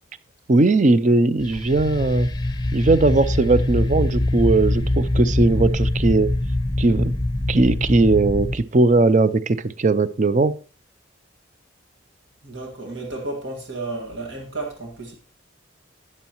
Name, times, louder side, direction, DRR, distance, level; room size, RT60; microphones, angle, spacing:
voice 1, 0.5-2.3 2.7-6.3 6.8-7.1 7.5-10.6, right 3 dB, 40° right, 0.5 m, -18 dB
sound 1, 1.4-8.6, left 1 dB, 20° left, 0.7 m, -23 dB
voice 2, 12.4-15.1, right 2 dB, 70° right, 1.9 m, -32 dB
12.5 x 9.6 x 3.0 m
head